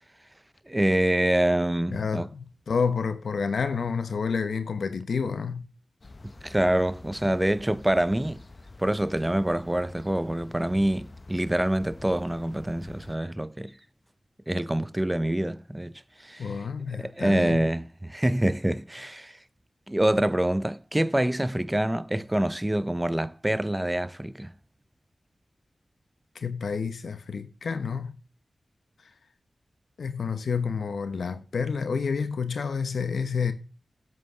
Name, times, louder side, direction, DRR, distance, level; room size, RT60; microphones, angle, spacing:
voice 1, 0.7-2.3 6.4-8.4 8.8-13.7 14.5-16.5 16.9-19.4 19.9-24.5, right 1 dB, 15° right, 0.7 m, -26 dB
voice 2, 1.9-5.7 16.4-17.6 26.3-28.2 30.0-33.5, left 5 dB, 85° left, 1.0 m, -29 dB
sound 1, 6.0-13.2, left 2 dB, 50° left, 1.1 m, -47 dB
8.2 x 7.7 x 6.7 m
cardioid pair, 40°, 0 cm